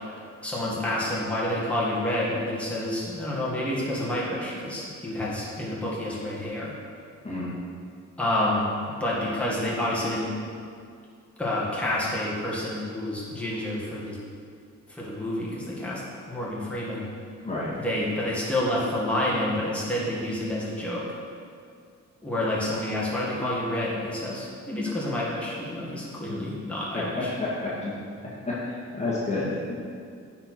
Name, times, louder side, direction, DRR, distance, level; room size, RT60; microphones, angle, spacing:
voice 1, 0.4-6.7 8.2-10.3 11.4-14.2 14.9-17.1 17.7-21.1 22.2-27.3, left 1 dB, 5° left, -7 dB, 1.9 m, -29 dB
voice 2, 17.4-17.7 26.9-27.0 27.4-27.9 28.5-29.7, left 2 dB, 20° left, -8 dB, 1.7 m, -30 dB
9.5 x 4.4 x 4.4 m, 2.3 s
cardioid pair, 85°, 30 cm